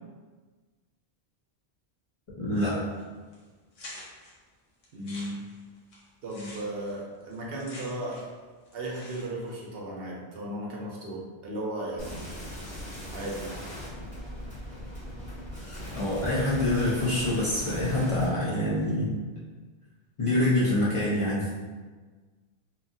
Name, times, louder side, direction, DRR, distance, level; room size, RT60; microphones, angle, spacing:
voice 1, 2.4-2.8 15.9-19.1 20.2-21.5, left 1 dB, 40° left, -10 dB, 0.5 m, -26 dB
sound 1, 2.5-3.0 3.3-3.4 3.7-4.3 4.8-8.4 8.6-9.5, left 1 dB, 70° left, 0.9 m, -47 dB
voice 2, 4.9-5.4 6.2-8.3 8.7-12.2 13.1-13.6, right 1 dB, 70° right, -3 dB, 0.8 m, -35 dB
sound 2, 12.0-18.2, equal, 5° left, 1.0 m, -39 dB
2.8 x 2.4 x 2.6 m, 1.4 s
omnidirectional pair, 1.1 m